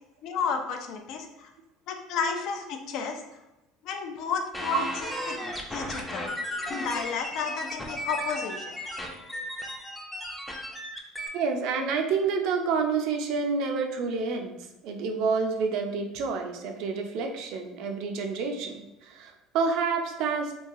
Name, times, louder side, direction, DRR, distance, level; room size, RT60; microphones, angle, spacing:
voice 1, 0.2-1.5 1.9-3.2 3.8-4.9 5.3-5.4 5.7-6.3 6.7-8.7, left 6 dB, 60° left, 5 dB, 0.4 m, -32 dB
sound 1, 4.5-11.3, equal, 5° left, 0.4 m, -35 dB
voice 2, 11.3-14.6 14.8-20.5, right 5 dB, 65° right, 4 dB, 0.4 m, -28 dB
3.0 x 2.3 x 2.6 m, 0.97 s
supercardioid pair, 110°, 0 cm